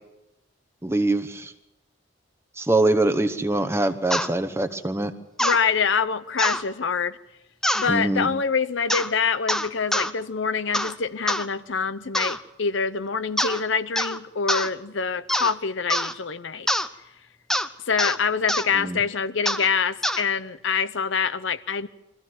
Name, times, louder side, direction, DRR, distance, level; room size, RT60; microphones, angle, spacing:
voice 1, 0.8-1.5 2.6-5.1 7.9-8.3 18.8-19.0, right 2 dB, 15° right, 1.0 m, -23 dB
sound 1, 4.1-4.3 5.4-5.6 6.4-6.6 7.6-7.9 8.9-9.1 9.5-10.1 10.7-11.0 11.3-11.5 12.1-12.4 13.4-13.6 14.0-14.2 14.5-14.7 15.3-15.5 15.9-16.1 16.7-16.9 17.5-17.7 18.0-18.2 18.5-18.7 19.5-19.7 20.0-20.2, equal, 5° left, 0.7 m, -25 dB
voice 2, 5.4-7.2 7.7-16.7 17.9-21.9, left 5 dB, 70° left, 0.8 m, -25 dB
23.5 x 15.0 x 7.9 m
head